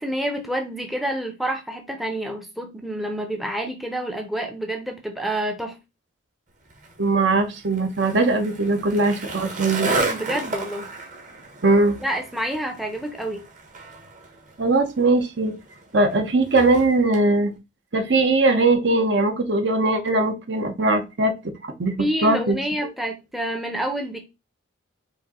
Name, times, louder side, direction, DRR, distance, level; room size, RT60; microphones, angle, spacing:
voice 1, 0.0-5.8 10.1-10.9 12.0-13.4 22.0-24.2, right 1 dB, ahead, 0.6 m, -28 dB
Skateboard, 6.7-17.2, right 2 dB, 40° right, 1.1 m, -33 dB
voice 2, 7.0-9.9 11.6-12.0 14.6-15.5 15.9-17.5 17.9-21.3 21.6-21.9 22.2-22.6, right 2 dB, 55° right, 0.8 m, -20 dB
5.0 x 2.6 x 4.1 m
head